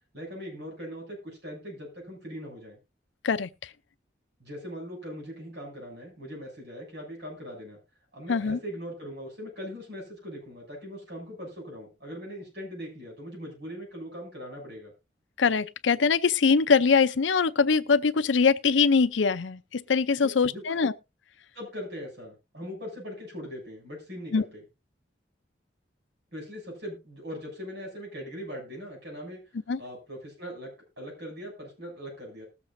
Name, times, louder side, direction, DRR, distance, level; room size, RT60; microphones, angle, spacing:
voice 1, 0.1-2.8 4.4-7.8 8.1-14.9 20.2-20.8 21.5-24.6 26.3-29.4 29.8-30.7 31.0-32.5, equal, 65° right, 7.2 m, -40 dB
voice 2, 3.2-3.7 8.3-8.6 15.4-20.9 24.3-24.4 29.7-29.8, left 5 dB, 85° left, 0.6 m, -23 dB
20.0 x 7.4 x 2.6 m
head